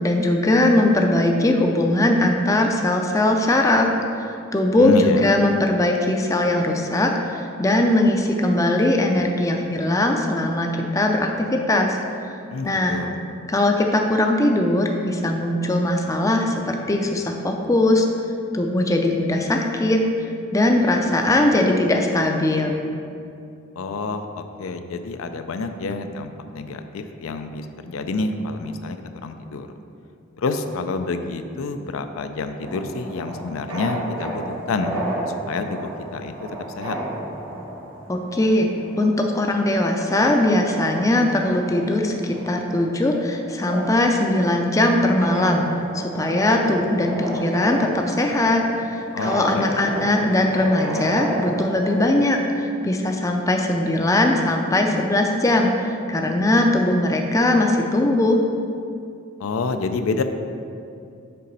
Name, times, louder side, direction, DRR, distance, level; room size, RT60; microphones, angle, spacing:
voice 1, 0.0-3.9 4.5-12.0 12.6-13.0 13.5-18.1 18.5-20.0 20.5-22.8 38.1-38.7 39.0-45.7 45.9-52.4 52.8-58.4, left 1 dB, 15° left, 2 dB, 0.4 m, -20 dB
voice 2, 4.8-5.4 12.5-13.2 23.8-29.0 29.2-29.7 30.4-34.9 35.3-36.3 36.8-37.0 49.1-49.9 59.4-60.2, left 3 dB, 85° left, 8 dB, 0.4 m, -28 dB
sound 1, 32.6-52.1, right 1 dB, 80° right, 1.2 m, -32 dB
6.7 x 4.0 x 5.3 m, 2.5 s
head